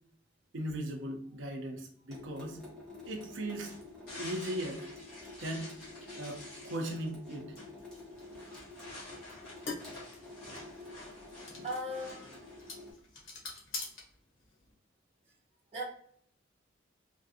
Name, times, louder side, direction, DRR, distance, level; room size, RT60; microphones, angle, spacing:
voice 1, 0.5-2.6 3.0-3.7 4.2-4.8 5.4-5.7 6.2-7.5, right 1 dB, 70° right, 2 dB, 0.5 m, -38 dB
Water tap faucet / Sink (filling or washing) / Drip, 2.1-12.9, left 2 dB, 5° left, 0.9 m, -49 dB
sound 1, 3.0-12.9, left 2 dB, 55° left, 1.5 m, -50 dB
sound 2, 7.8-14.7, left 3 dB, 85° left, 1.1 m, -46 dB
voice 2, 11.6-12.7 15.7-15.8, equal, 30° right, -6 dB, 0.8 m, -39 dB
3.3 x 2.5 x 2.7 m, 0.63 s
head